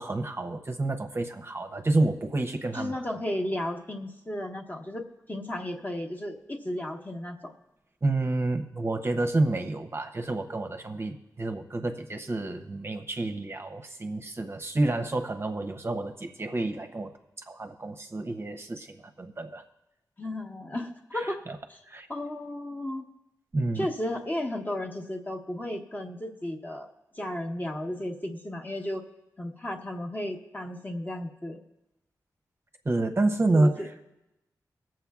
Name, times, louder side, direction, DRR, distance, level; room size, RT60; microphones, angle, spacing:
voice 1, 0.0-3.0 8.0-17.1 17.5-19.6 21.1-21.6 21.9-22.1 23.5-23.9 32.8-33.7, right 2 dB, 35° right, 5 dB, 0.7 m, -29 dB
voice 2, 2.7-7.5 20.2-21.4 21.7-21.8 22.1-23.0 23.7-29.0 29.4-31.6 33.5-33.9, left 1 dB, 25° left, 2 dB, 1.1 m, -34 dB
22.0 x 7.5 x 2.4 m, 0.95 s
cardioid pair, 70°, 7 cm